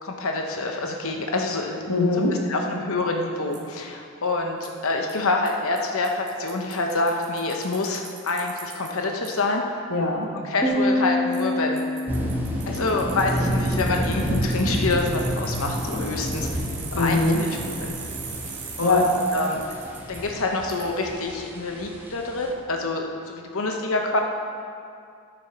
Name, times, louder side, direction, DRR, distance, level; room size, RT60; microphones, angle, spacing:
voice 1, 0.0-1.9 2.1-9.6 10.5-11.8 12.7-16.6 16.9-17.5 17.8-17.9 18.8-19.0 19.3-19.6 20.1-24.2, left 2 dB, 65° left, 2 dB, 0.9 m, -27 dB
voice 2, 1.9-2.4 9.9-10.4 16.9-17.5 18.8-19.1, left 2 dB, 85° left, -1 dB, 1.6 m, -21 dB
Bicycle, 3.5-3.6 4.6-4.7 5.1-5.2 5.5-5.6 5.8-5.9 6.0-8.9 9.2-9.3 11.3-11.4 11.8-20.2 20.7-20.8, right 6 dB, 55° right, 2.0 m, -39 dB
sound 1, 10.6-13.0, left 1 dB, 10° left, 1.6 m, -26 dB
sound 2, 12.1-22.5, equal, 10° right, 1.3 m, -29 dB
10.5 x 8.9 x 5.8 m, 2.4 s
head